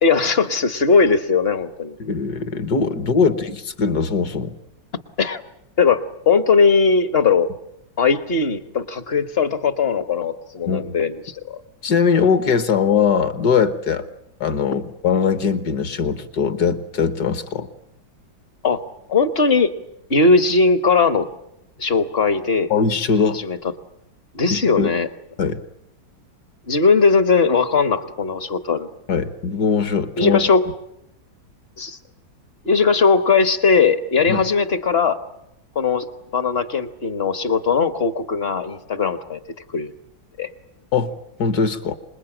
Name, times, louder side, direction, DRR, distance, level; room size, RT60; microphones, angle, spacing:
voice 1, 0.0-2.0 5.2-5.4 5.8-7.5 8.0-11.6 18.6-18.8 19.1-19.7 20.1-21.3 21.8-22.7 23.3-23.6 24.3-25.1 26.7-28.9 30.2-30.7 31.8-32.0 32.6-35.2 35.7-36.1 36.3-39.4 39.7-39.9 40.4-40.5, left 4 dB, 40° left, 11 dB, 1.1 m, -19 dB
voice 2, 2.0-4.6 10.7-11.0 11.8-14.0 14.4-17.7 22.7-23.4 24.5-24.9 25.4-25.6 29.1-30.4 34.3-34.4 40.9-41.1 41.4-41.9, left 5 dB, 55° left, 11 dB, 1.7 m, -20 dB
26.5 x 21.0 x 8.9 m, 0.82 s
omnidirectional pair, 2.1 m